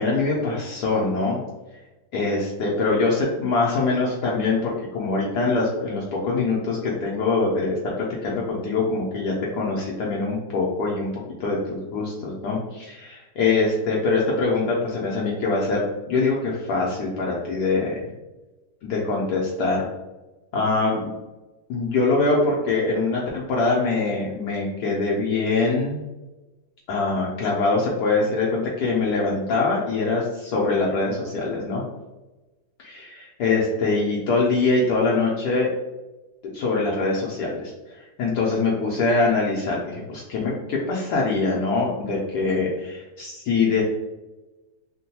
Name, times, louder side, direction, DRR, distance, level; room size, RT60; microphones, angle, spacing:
voice 1, 0.0-1.4 2.1-11.1 11.4-18.1 18.8-19.8 20.5-21.1 21.7-26.0 26.9-31.8 32.8-35.7 36.4-43.8, left 3 dB, 70° left, -4 dB, 1.0 m, -23 dB
3.7 x 2.2 x 2.8 m, 1.1 s
omnidirectional pair, 2.1 m